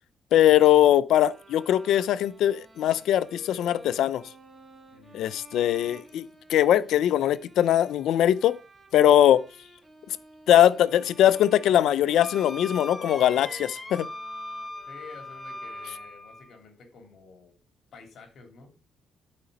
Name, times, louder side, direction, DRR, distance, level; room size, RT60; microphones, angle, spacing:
voice 1, 0.3-4.2 5.1-8.6 8.9-9.4 10.5-14.1, left 11 dB, 80° left, 0.5 m, -21 dB
sound 1, 1.1-16.2, right 3 dB, 20° right, 2.3 m, -51 dB
voice 2, 4.9-5.3 14.9-17.5 17.9-18.7, left 4 dB, 60° left, 3.4 m, -49 dB
Wind instrument woodwind instrument, 12.2-16.5, left 1 dB, 15° left, 1.1 m, -39 dB
11.5 x 5.1 x 5.3 m
cardioid pair, 90°, 0 cm